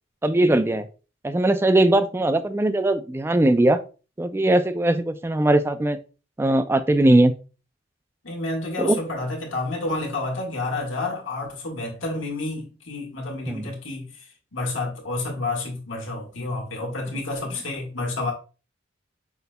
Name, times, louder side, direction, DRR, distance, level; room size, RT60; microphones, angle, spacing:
voice 1, 0.2-0.9 1.2-3.8 4.2-6.0 6.4-7.3 8.8-9.0 13.5-13.6, right 1 dB, 10° right, 0.3 m, -20 dB
voice 2, 8.2-14.3 14.5-18.3, left 2 dB, 85° left, 1.6 m, -29 dB
5.9 x 4.0 x 2.2 m
head